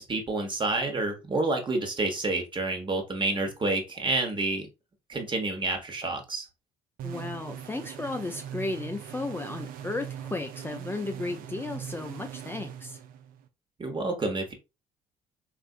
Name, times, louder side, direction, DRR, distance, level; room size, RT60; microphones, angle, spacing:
voice 1, 0.0-4.7 5.1-6.5 13.8-14.5, right 2 dB, 30° right, 1.0 m, -29 dB
voice 2, 7.0-13.0, left 2 dB, 15° left, 0.4 m, -34 dB
sound 1, 7.0-13.5, right 10 dB, 65° right, 0.4 m, -41 dB
3.5 x 2.5 x 2.4 m
hypercardioid pair, 60°, 16 cm